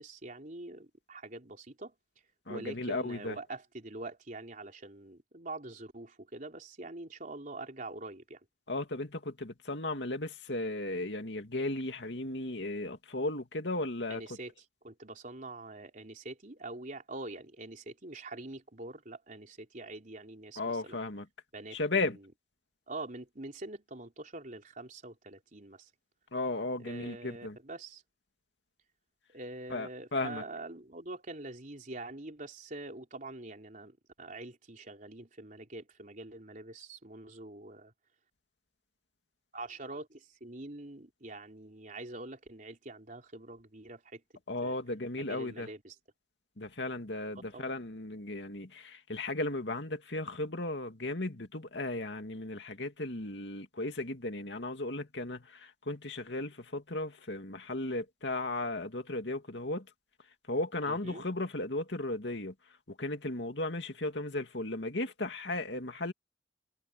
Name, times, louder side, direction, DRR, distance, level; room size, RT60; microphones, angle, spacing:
voice 1, 0.0-1.9 2.5-8.4 14.1-14.5 14.8-21.0 21.5-22.2 22.9-25.9 26.8-28.0 29.3-37.9 39.5-44.2 44.6-44.8 45.1-45.9 47.5-47.7 60.9-61.2, right 2 dB, 45° right, 3.8 m, -45 dB
voice 2, 2.5-3.4 8.7-14.2 20.6-21.3 21.7-22.2 26.3-27.6 29.7-30.4 44.5-45.7 46.6-59.9 60.5-62.5 62.9-66.1, left 2 dB, 70° left, 2.5 m, -35 dB
head